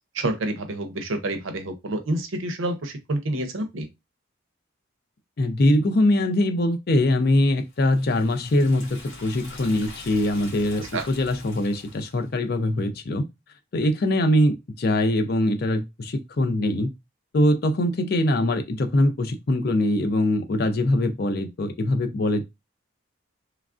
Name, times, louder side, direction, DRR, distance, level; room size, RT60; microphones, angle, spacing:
voice 1, 0.1-3.9 10.9-11.1, right 1 dB, 75° right, 0.6 m, -28 dB
voice 2, 5.4-13.2 13.7-16.9 17.3-22.4, left 1 dB, 50° left, 0.4 m, -22 dB
Liquid, 7.7-12.3, left 2 dB, 75° left, 1.1 m, -44 dB
3.2 x 2.3 x 2.4 m
head